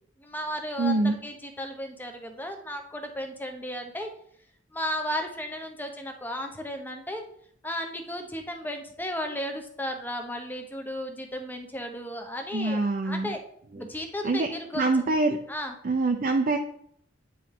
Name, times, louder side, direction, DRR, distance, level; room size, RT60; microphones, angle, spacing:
voice 1, 0.2-4.1 4.7-7.2 7.6-13.4 13.8-14.9 15.5-15.7, left 1 dB, 10° left, 4 dB, 0.8 m, -34 dB
voice 2, 0.8-1.2 12.5-13.3 14.2-14.5 14.7-15.4 15.8-16.6, right 3 dB, 45° right, 4 dB, 0.5 m, -24 dB
9.1 x 4.7 x 3.6 m, 0.67 s
head